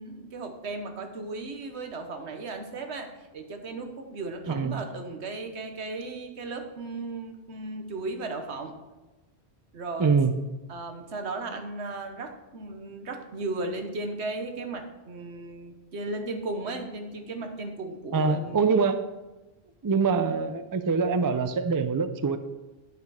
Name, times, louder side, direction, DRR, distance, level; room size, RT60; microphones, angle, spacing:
voice 1, 0.0-8.7 9.7-10.2 10.7-18.6, right 2 dB, 80° right, 5 dB, 1.3 m, -36 dB
voice 2, 4.5-4.8 10.0-10.3 18.1-19.1 19.8-22.4, right 5 dB, 35° right, 10 dB, 0.3 m, -24 dB
9.5 x 6.7 x 4.8 m, 1.1 s
omnidirectional pair, 1.1 m